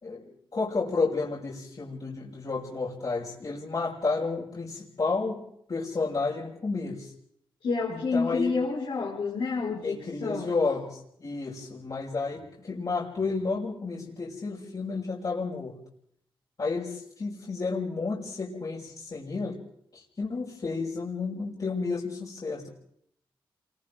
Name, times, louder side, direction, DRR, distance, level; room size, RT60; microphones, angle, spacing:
voice 1, 0.0-5.4 5.7-7.1 7.9-8.6 9.8-15.8 16.6-19.6 19.9-22.7, left 4 dB, 50° left, -7 dB, 5.9 m, -31 dB
voice 2, 7.6-10.5, left 4 dB, 80° left, -7 dB, 5.4 m, -29 dB
30.0 x 24.0 x 3.8 m, 0.69 s
cardioid pair, 50°, 9 cm